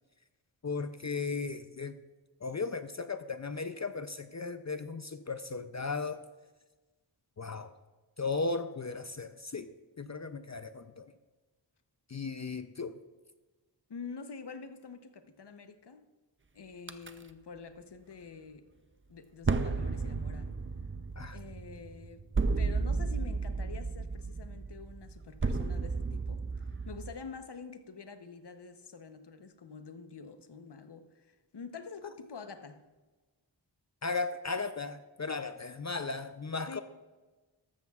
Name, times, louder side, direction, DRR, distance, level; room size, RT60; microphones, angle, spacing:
voice 1, 0.6-2.0 2.4-6.2 7.4-7.7 8.2-9.7 10.0-11.1 12.1-13.0 21.2-21.4 34.0-36.8, left 4 dB, 40° left, 0.5 m, -36 dB
voice 2, 13.9-16.1 16.5-18.7 19.1-20.6 21.3-22.2 22.6-26.4 26.9-32.8 36.7-36.8, left 5 dB, 60° left, 0.8 m, -47 dB
sound 1, 16.9-17.1 19.4-27.1, right 4 dB, 25° right, 0.5 m, -33 dB
14.0 x 13.0 x 2.4 m
wide cardioid pair, 60°, 46 cm